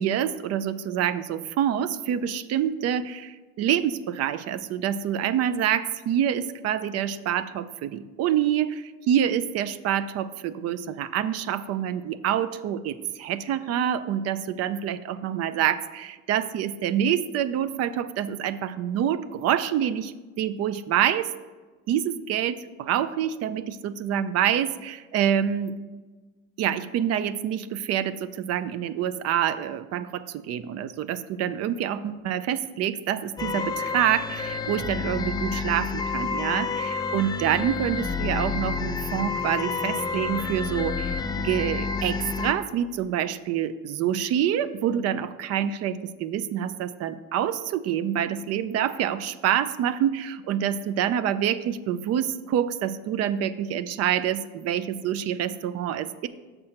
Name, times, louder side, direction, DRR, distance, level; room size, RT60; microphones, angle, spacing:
voice 1, 0.0-21.3 21.9-25.8 26.6-56.3, right 10 dB, 55° right, 14 dB, 0.4 m, -27 dB
sound 1, 33.4-42.5, left 5 dB, 15° left, 0.3 m, -29 dB
6.6 x 4.3 x 5.7 m, 1.3 s
cardioid pair, 130°, 30 cm